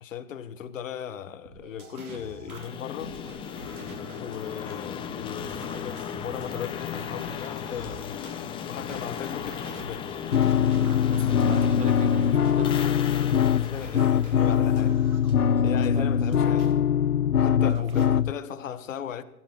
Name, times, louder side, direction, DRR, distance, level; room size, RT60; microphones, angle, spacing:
voice 1, 0.0-3.1 4.2-8.2 8.6-10.1 13.5-15.0 15.6-16.7 17.4-19.2, left 9 dB, 60° left, 1.4 m, -37 dB
sound 1, 1.4-8.3 8.8-16.7 17.2-18.1, right 3 dB, 75° right, 3.9 m, -46 dB
sound 2, 2.5-15.4, left 8 dB, 10° left, 0.8 m, -36 dB
sound 3, 10.3-18.3, left 8 dB, 90° left, 0.7 m, -22 dB
voice 2, 11.1-12.8 15.9-16.1 17.6-17.8, right 5 dB, 15° right, 0.8 m, -39 dB
15.5 x 15.0 x 4.2 m
figure-of-eight pair, 120°, 44 cm